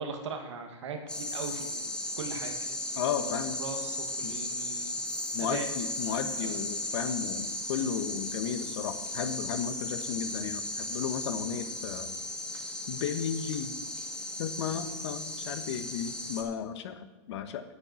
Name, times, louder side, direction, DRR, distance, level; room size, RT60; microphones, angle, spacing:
voice 1, 0.0-2.8 3.2-5.0 5.4-5.7 6.4-6.6 15.5-15.6, right 4 dB, 85° right, 4 dB, 1.9 m, -40 dB
sound 1, 1.1-16.4, left 1 dB, 5° left, 1.3 m, -36 dB
voice 2, 3.0-3.6 4.2-4.3 5.3-12.1 12.9-13.8 14.4-17.6, left 8 dB, 70° left, 10 dB, 1.2 m, -34 dB
9.2 x 8.3 x 5.7 m, 1.2 s
supercardioid pair, 135°, 15 cm